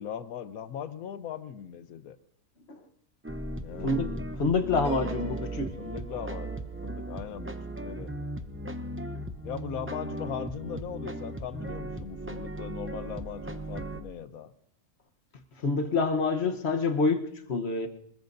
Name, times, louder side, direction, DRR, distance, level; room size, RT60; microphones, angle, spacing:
voice 1, 0.0-2.2 3.6-4.1 5.2-5.5 5.8-8.2 9.4-14.5, left 8 dB, 70° left, 12 dB, 1.3 m, -39 dB
sound 1, 3.2-14.0, right 2 dB, 15° right, 0.5 m, -37 dB
voice 2, 4.4-5.7 15.6-17.9, left 3 dB, 45° left, 6 dB, 1.3 m, -27 dB
Piano, 4.8-8.6, right 1 dB, 5° left, 3.5 m, -49 dB
26.5 x 20.5 x 2.7 m, 0.73 s
omnidirectional pair, 1.6 m